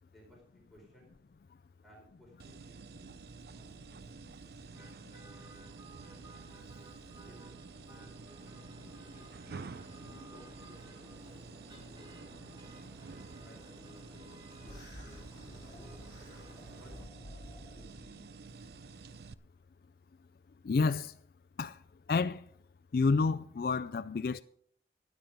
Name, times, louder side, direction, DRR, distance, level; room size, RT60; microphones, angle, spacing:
voice 1, 0.0-1.1 1.8-4.0 4.4-4.8 5.1-6.3 7.3-7.6 7.9-8.6 9.1-9.2 10.0-11.0 11.9-12.7 13.4-14.3 16.2-16.9 17.6-18.4, equal, ahead, 4.4 m, -62 dB
sound 1, 2.4-19.3, right 4 dB, 60° right, 0.4 m, -50 dB
sound 2, 4.7-17.0, equal, 25° right, 3.7 m, -56 dB
sound 3, 14.6-18.1, left 1 dB, 25° left, 3.3 m, -51 dB
voice 2, 20.6-21.1 21.6-21.8 22.1-22.4 22.9-24.4, left 4 dB, 55° left, 0.4 m, -29 dB
13.0 x 9.4 x 5.1 m
head